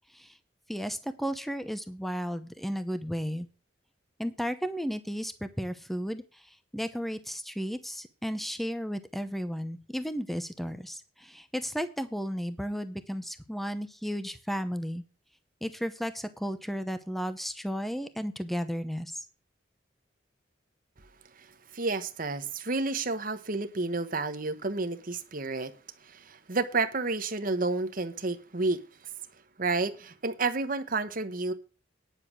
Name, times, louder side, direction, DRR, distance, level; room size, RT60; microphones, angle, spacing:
voice 1, 0.7-3.5 4.2-6.4 6.7-15.0 15.6-19.3, equal, ahead, 11 dB, 0.7 m, -34 dB
voice 2, 21.7-25.7 26.0-28.8 29.6-31.5, right 3 dB, 45° right, 9 dB, 1.1 m, -30 dB
10.0 x 6.8 x 6.1 m, 0.34 s
head